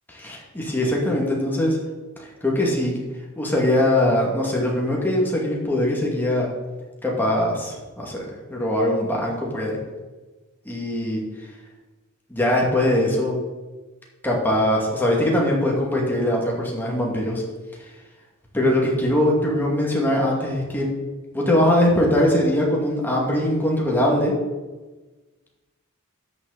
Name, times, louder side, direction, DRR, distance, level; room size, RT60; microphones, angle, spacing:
voice 1, 0.1-1.8 2.2-3.0 3.4-6.5 7.0-9.8 10.7-11.2 12.3-13.4 14.2-17.4 18.5-20.9 21.3-24.3, left 1 dB, 10° left, -2 dB, 2.3 m, -21 dB
12.5 x 6.3 x 4.1 m, 1.2 s
head